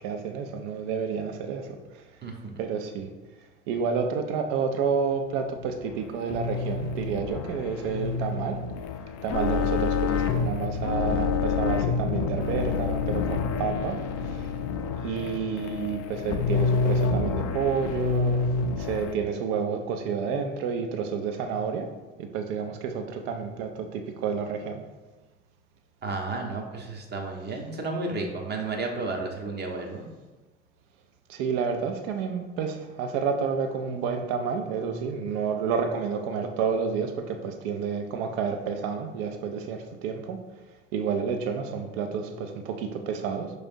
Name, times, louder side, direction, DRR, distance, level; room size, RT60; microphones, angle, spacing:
voice 1, 0.0-1.7 2.6-3.1 3.7-8.6 9.2-14.5 15.0-18.5 18.8-21.9 22.2-24.8 31.3-40.4 40.9-43.5, right 6 dB, 65° right, 6 dB, 0.6 m, -30 dB
voice 2, 2.2-2.5 26.0-30.0, right 3 dB, 30° right, 1 dB, 0.9 m, -32 dB
sound 1, 5.3-19.1, left 5 dB, 45° left, 0.5 m, -28 dB
5.1 x 3.2 x 2.6 m, 1.2 s
hypercardioid pair, 70°, 34 cm